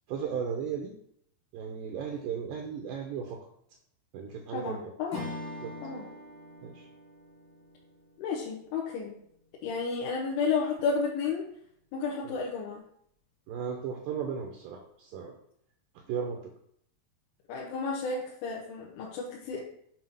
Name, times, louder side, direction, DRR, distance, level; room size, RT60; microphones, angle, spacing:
voice 1, 0.1-0.9 1.5-3.4 4.1-4.9 5.6-5.7 6.6-6.9 12.2-12.4 13.5-15.4 16.1-16.4, right 7 dB, 80° right, 1 dB, 2.1 m, -35 dB
voice 2, 4.5-5.3 5.8-6.1 8.2-9.1 9.6-11.4 11.9-12.8 17.5-19.6, left 5 dB, 75° left, -4 dB, 2.5 m, -32 dB
Strum, 5.1-9.7, left 2 dB, 50° left, 1.1 m, -44 dB
7.4 x 2.8 x 5.5 m, 0.69 s
omnidirectional pair, 4.6 m